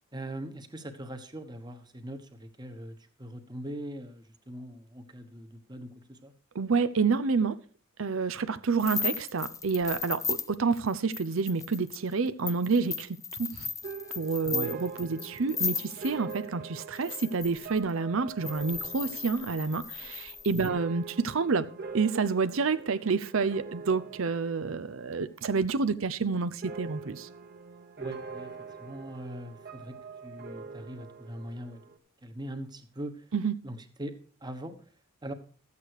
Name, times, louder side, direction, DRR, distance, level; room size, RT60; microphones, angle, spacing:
voice 1, 0.1-6.3 14.5-14.7 20.5-20.8 28.0-28.5 28.8-30.0 30.2-31.8 32.2-33.2 33.6-34.1 34.4-34.8 35.2-35.3, right 1 dB, 20° right, 1.2 m, -41 dB
voice 2, 6.5-7.6 8.0-13.7 14.2-27.3 33.3-33.5, right 4 dB, 65° right, 0.6 m, -29 dB
sound 1, 8.8-16.4 16.9-17.8 18.4-20.7, left 6 dB, 15° left, 0.5 m, -36 dB
sound 2, 13.8-25.3 25.6-26.2 26.6-32.0, right 5 dB, 45° right, 1.4 m, -44 dB
13.5 x 8.4 x 4.8 m
head